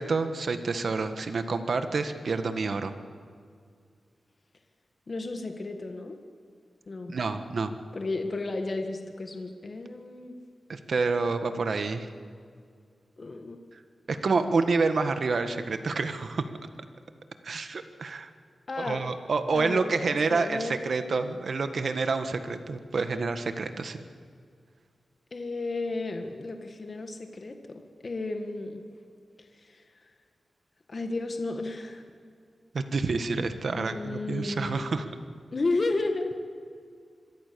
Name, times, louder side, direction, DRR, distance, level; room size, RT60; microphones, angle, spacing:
voice 1, 0.0-2.9 7.1-7.7 10.7-12.1 14.1-16.5 17.4-18.3 18.8-24.0 32.7-35.1, right 4 dB, 60° right, 8 dB, 1.7 m, -28 dB
voice 2, 5.1-6.2 6.9-7.1 7.9-10.4 13.2-13.6 18.7-19.1 19.5-20.8 25.3-28.8 29.4-29.8 30.9-32.0 33.7-34.8 35.5-36.3, left 3 dB, 40° left, 5 dB, 1.9 m, -33 dB
26.5 x 22.5 x 7.0 m, 2.2 s
wide cardioid pair, 120°, 0 cm